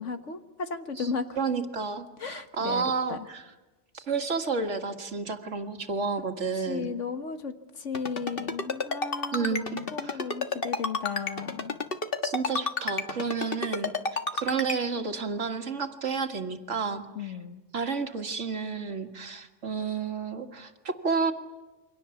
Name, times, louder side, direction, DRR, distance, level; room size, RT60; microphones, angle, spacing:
voice 1, 0.0-1.2 2.2-3.3 6.6-9.6 9.9-11.8 17.1-17.6, left 5 dB, 80° left, 8 dB, 1.7 m, -35 dB
voice 2, 1.3-3.4 3.9-6.9 9.3-10.2 12.2-17.3 17.7-21.3, right 5 dB, 75° right, 5 dB, 2.1 m, -31 dB
Ringtone, 7.9-14.8, left 4 dB, 50° left, 1.7 m, -30 dB
29.0 x 24.0 x 7.1 m, 1.1 s
omnidirectional pair, 1.2 m